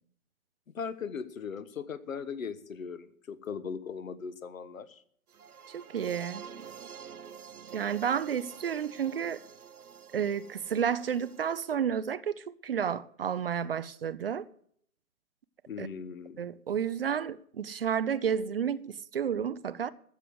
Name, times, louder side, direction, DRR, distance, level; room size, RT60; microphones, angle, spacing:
voice 1, 0.7-5.0 15.7-16.4, left 6 dB, 65° left, 1.3 m, -39 dB
sound 1, 5.3-11.7, right 7 dB, 80° right, 0.8 m, -48 dB
voice 2, 5.7-6.5 7.7-9.4 10.1-14.5 15.8-15.9 16.4-19.9, right 8 dB, 45° right, 0.5 m, -31 dB
14.0 x 6.7 x 7.7 m
figure-of-eight pair, 135°, 44 cm